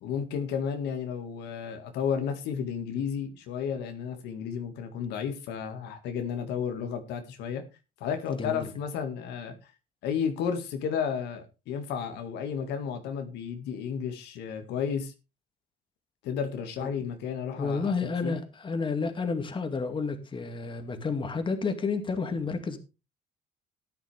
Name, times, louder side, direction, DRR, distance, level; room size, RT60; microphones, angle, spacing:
voice 1, 0.0-7.6 8.0-9.7 10.0-15.1 16.2-17.9 18.2-18.4, left 7 dB, 85° left, 2.0 m, -32 dB
voice 2, 8.3-8.6 16.8-16.9 17.6-22.8, left 4 dB, 30° left, 2.3 m, -30 dB
14.0 x 10.5 x 3.5 m
cardioid pair, 110°, 17 cm